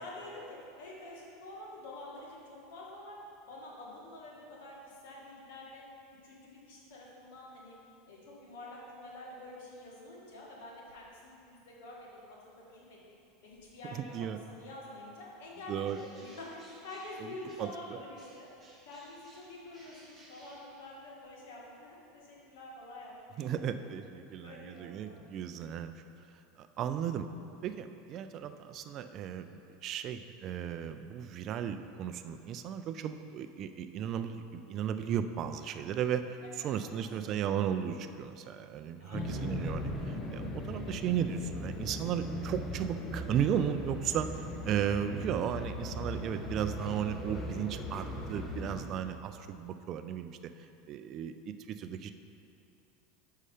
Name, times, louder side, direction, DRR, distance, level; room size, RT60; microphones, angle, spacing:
voice 1, 0.0-3.2 3.5-5.8 6.2-7.8 8.1-18.5 18.9-23.6 24.4-25.4 36.5-37.1 39.0-39.4, left 1 dB, 75° left, -4 dB, 1.8 m, -47 dB
voice 2, 14.0-14.4 15.7-16.0 17.6-17.7 23.4-25.9 26.6-27.3 27.6-36.2 36.6-50.4 50.9-52.1, right 9 dB, 45° right, 9 dB, 0.3 m, -35 dB
Bird, 15.8-17.9 18.2-21.2, right 2 dB, 20° right, 1.6 m, -59 dB
sound 1, 39.1-48.9, left 1 dB, 25° left, 0.8 m, -39 dB
6.4 x 5.5 x 4.9 m, 2.6 s
supercardioid pair, 120°, 0 cm